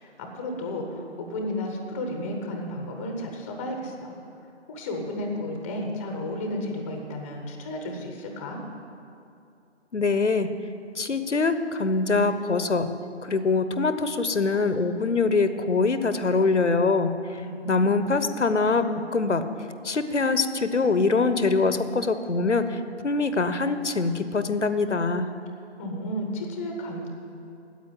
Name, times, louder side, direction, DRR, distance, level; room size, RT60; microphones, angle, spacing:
voice 1, 0.0-4.1 4.7-8.6 17.3-17.9 25.8-27.1, left 1 dB, 10° left, 3 dB, 0.8 m, -33 dB
voice 2, 9.9-10.5 11.0-12.9 13.2-17.1 17.7-19.4 19.8-25.3, left 3 dB, 85° left, 11 dB, 1.0 m, -23 dB
9.5 x 8.3 x 9.5 m, 2.6 s
figure-of-eight pair, 150°, 35 cm